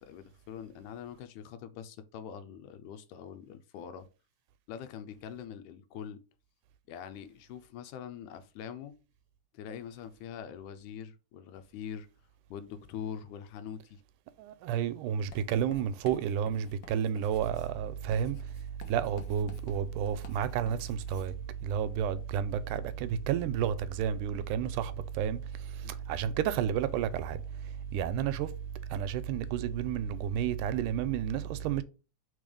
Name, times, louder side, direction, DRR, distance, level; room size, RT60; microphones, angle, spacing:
voice 1, 0.0-4.1 4.7-6.2 6.9-9.0 9.5-12.1 12.5-14.0 24.3-24.4 25.8-26.0, left 8 dB, 90° left, 2.2 m, -43 dB
voice 2, 14.4-31.8, right 9 dB, 85° right, 2.1 m, -31 dB
Writing, 15.3-21.4, left 3 dB, 60° left, 1.2 m, -51 dB
5.4 x 3.5 x 5.1 m
omnidirectional pair, 3.6 m